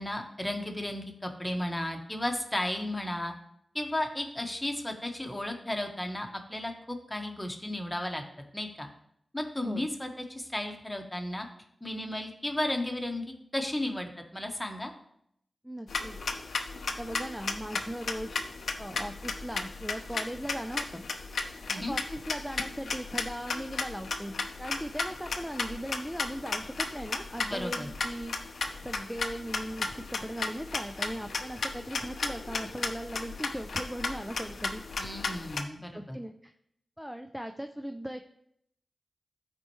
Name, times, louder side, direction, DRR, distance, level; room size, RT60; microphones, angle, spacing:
voice 1, 0.0-3.3 3.7-8.2 8.5-8.9 9.3-11.5 11.8-13.2 13.5-14.9 21.7-21.9 27.4-27.9 35.0-36.2, left 1 dB, 10° left, 3 dB, 1.3 m, -34 dB
voice 2, 15.6-16.2 17.0-18.4 18.8-21.0 21.9-28.3 28.8-34.8 35.9-36.5 37.0-38.3, equal, 5° right, 6 dB, 0.4 m, -38 dB
sound 1, 15.9-35.6, left 4 dB, 85° left, 0.6 m, -35 dB
13.0 x 4.4 x 3.1 m, 0.72 s
cardioid pair, 65°, 0 cm